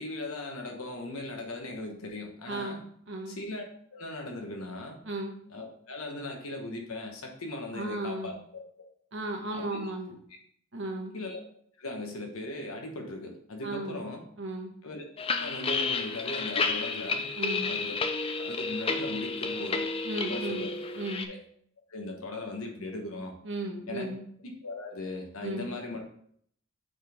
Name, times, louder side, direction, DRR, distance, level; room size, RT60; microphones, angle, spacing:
voice 1, 0.0-2.8 3.3-3.6 3.9-5.0 5.5-8.6 9.5-9.8 11.1-11.4 11.8-14.2 14.8-15.0 15.3-17.3 17.6-18.0 18.4-19.9 20.3-20.7 21.3-21.4 21.9-23.3 23.9-24.1 24.4-26.1, left 2 dB, 80° left, 2 dB, 1.2 m, -38 dB
voice 2, 2.5-3.4 5.0-5.3 7.7-8.3 9.1-10.1 10.7-11.1 13.6-14.1 14.4-14.7 17.3-17.7 20.0-20.7 20.9-21.3 23.4-24.2 25.4-25.7, right 1 dB, 55° right, 1 dB, 1.2 m, -35 dB
sound 1, 15.2-21.3, left 4 dB, 25° left, 0.4 m, -31 dB
7.2 x 4.2 x 3.5 m, 0.63 s
head